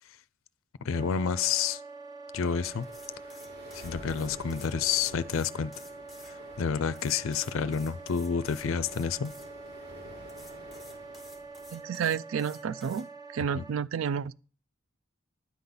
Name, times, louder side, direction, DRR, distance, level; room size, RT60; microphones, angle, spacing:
voice 1, 0.8-1.8 2.3-2.9 3.7-5.7 6.6-9.3 13.5-13.6, left 6 dB, 70° left, 0.4 m, -29 dB
Wind instrument woodwind instrument, 0.9-13.8, right 3 dB, 20° right, 0.7 m, -46 dB
sound 1, 2.4-11.8, equal, 50° right, 2.9 m, -50 dB
sound 2, 2.8-6.3 6.9-9.5 10.3-13.0, left 2 dB, ahead, 1.9 m, -53 dB
voice 2, 11.7-13.1 13.3-14.3, right 7 dB, 70° right, 0.4 m, -30 dB
10.0 x 3.9 x 7.0 m
head